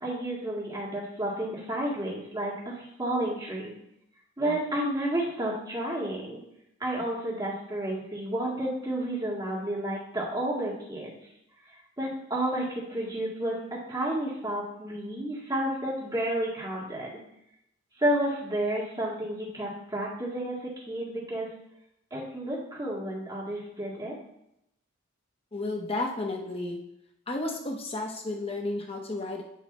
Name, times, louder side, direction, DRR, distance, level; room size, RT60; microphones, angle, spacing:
voice 1, 0.0-3.7 4.4-6.4 6.8-11.2 11.7-17.2 18.0-21.5 22.1-24.1, right 1 dB, 20° right, -5 dB, 2.0 m, -31 dB
voice 2, 25.5-26.8 27.3-29.4, left 2 dB, 30° left, 1 dB, 1.0 m, -32 dB
9.2 x 3.2 x 4.3 m, 0.80 s
head